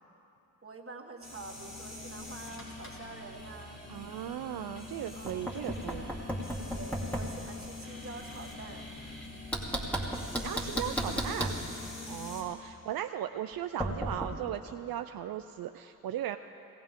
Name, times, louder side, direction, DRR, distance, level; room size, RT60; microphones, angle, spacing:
voice 1, 0.6-3.8 4.9-5.6 6.5-8.9 12.0-12.3, right 3 dB, 40° right, 2 dB, 1.6 m, -47 dB
sound 1, 1.2-12.4, left 2 dB, 45° left, 3.7 m, -45 dB
voice 2, 3.9-6.1 10.3-11.5 12.1-16.4, right 11 dB, 75° right, 8 dB, 0.5 m, -37 dB
Knock, 5.3-7.4 9.5-11.6 13.8-14.3, equal, 5° left, 2.2 m, -34 dB
18.5 x 16.0 x 3.7 m, 2.9 s
cardioid pair, 45°, 36 cm